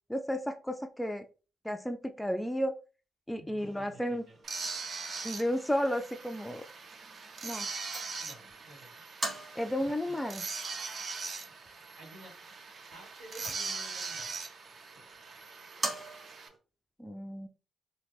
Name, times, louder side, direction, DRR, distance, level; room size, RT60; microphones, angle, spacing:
voice 1, 0.1-1.2 1.6-2.8 3.3-4.2 5.2-6.6 7.4-7.7 9.6-10.5 17.0-17.5, equal, 5° left, 6 dB, 0.3 m, -33 dB
voice 2, 3.4-4.4 8.2-9.0 9.8-10.2 12.0-12.3 12.9-14.3 14.9-15.0, right 1 dB, 90° right, -7 dB, 1.4 m, -52 dB
sound 1, 3.6-16.6, right 1 dB, 25° right, 1.4 m, -45 dB
sound 2, 4.4-16.5, right 4 dB, 50° right, 0.5 m, -41 dB
3.1 x 2.2 x 3.4 m, 0.35 s
cardioid pair, 90°, 0 cm